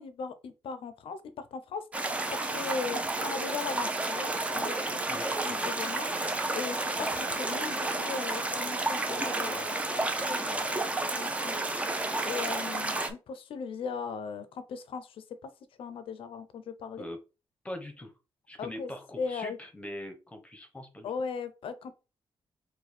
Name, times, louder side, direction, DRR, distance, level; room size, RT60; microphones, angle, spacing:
voice 1, 0.0-5.2 5.4-9.8 10.3-10.8 11.1-11.6 12.2-15.2 15.8-17.1 18.6-18.9 19.2-19.6 21.0-22.0, left 5 dB, 75° left, 0.6 m, -38 dB
sound 1, 1.9-13.1, right 2 dB, 15° right, 0.6 m, -31 dB
voice 2, 5.1-5.7 17.0-17.2 17.6-18.1 18.5-21.1, left 1 dB, 15° left, 0.9 m, -42 dB
5.0 x 2.3 x 4.2 m
wide cardioid pair, 150°, 9 cm